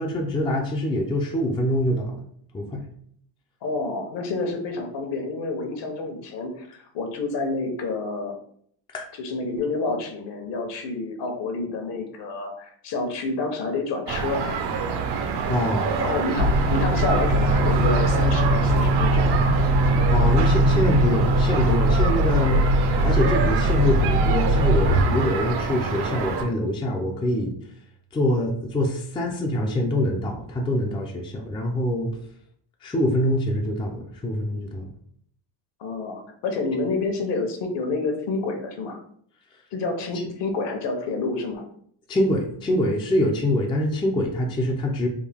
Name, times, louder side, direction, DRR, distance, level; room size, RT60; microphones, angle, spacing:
voice 1, 0.0-2.2 2.5-2.9 8.9-9.1 15.5-15.9 20.1-22.7 23.0-27.5 28.1-32.1 32.8-34.8 42.1-45.1, left 1 dB, 10° left, 1 dB, 0.4 m, -24 dB
voice 2, 3.6-6.7 6.9-8.4 9.2-14.4 16.0-19.3 35.8-39.0 39.7-41.6, left 3 dB, 60° left, 4 dB, 1.0 m, -28 dB
sound 1, 14.1-26.4, right 6 dB, 55° right, 0.7 m, -27 dB
sound 2, 16.4-25.0, right 1 dB, 85° right, 1.1 m, -21 dB
Bowed string instrument, 24.9-27.4, right 2 dB, 80° left, 1.1 m, -30 dB
3.6 x 2.2 x 3.4 m, 0.64 s
supercardioid pair, 100°, 49 cm